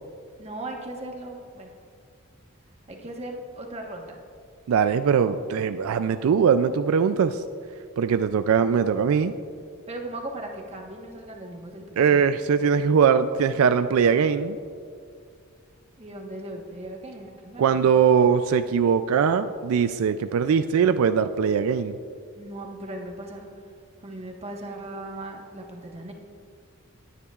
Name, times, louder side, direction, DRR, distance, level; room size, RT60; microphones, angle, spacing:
voice 1, 0.4-1.7 2.9-4.2 9.9-12.4 16.0-17.9 22.4-23.5 24.0-26.1, right 1 dB, 30° right, 1 dB, 1.2 m, -38 dB
voice 2, 4.7-7.4 8.0-9.3 12.0-14.6 17.6-22.0, right 6 dB, 80° right, 10 dB, 0.3 m, -21 dB
19.0 x 10.0 x 2.4 m, 2.2 s
head